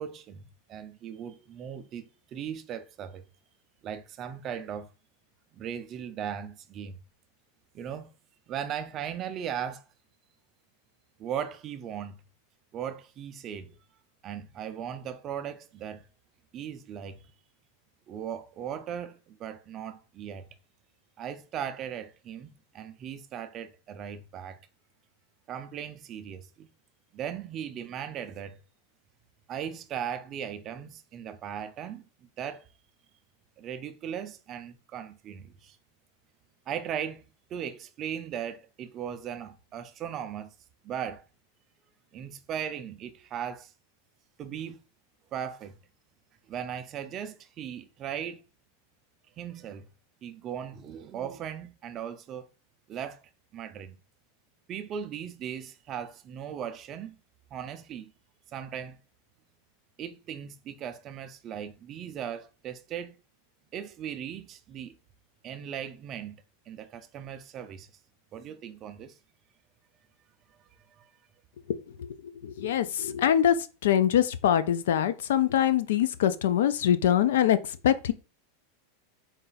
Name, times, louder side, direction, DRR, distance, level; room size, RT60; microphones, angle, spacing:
voice 1, 0.0-3.3 3.8-4.9 5.5-7.0 7.7-8.1 8.5-9.8 11.2-12.2 12.7-13.8 14.2-16.1 16.5-17.3 18.1-20.5 21.2-24.6 25.5-26.7 27.1-28.6 29.5-32.6 33.6-35.8 36.7-40.5 40.8-41.2 42.1-43.7 44.4-44.8 45.3-45.8 46.5-48.4 49.4-49.9 50.2-52.5 52.9-53.2 53.5-53.9 54.7-57.2 57.5-58.1 58.5-59.0 60.0-63.2 63.7-64.9 65.4-66.4 66.7-67.9 68.3-69.2 70.9-71.1, right 9 dB, 25° right, 0.3 m, -38 dB
voice 2, 71.7-72.2 72.4-73.5 73.8-77.6 77.8-78.1, left 10 dB, 80° left, 0.4 m, -24 dB
3.8 x 2.3 x 4.0 m
supercardioid pair, 175°, 0 cm